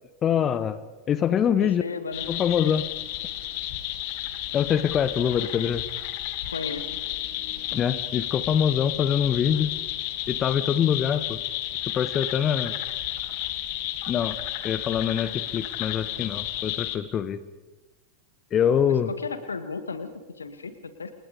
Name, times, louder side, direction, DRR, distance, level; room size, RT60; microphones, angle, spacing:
voice 1, 0.2-0.8 1.1-1.8 2.3-2.8 4.5-5.8 7.7-9.7 10.3-11.4 11.9-12.7 14.1-14.4 14.6-17.4 18.5-19.1, left 8 dB, 25° left, 13 dB, 1.2 m, -24 dB
voice 2, 1.6-2.2 2.7-2.8 6.5-7.0 18.9-21.1, left 4 dB, 75° left, 10 dB, 2.4 m, -35 dB
sound 1, 2.1-17.0, left 14 dB, 45° left, 2.0 m, -32 dB
29.0 x 28.5 x 5.2 m, 1.2 s
figure-of-eight pair, 90°, 0 cm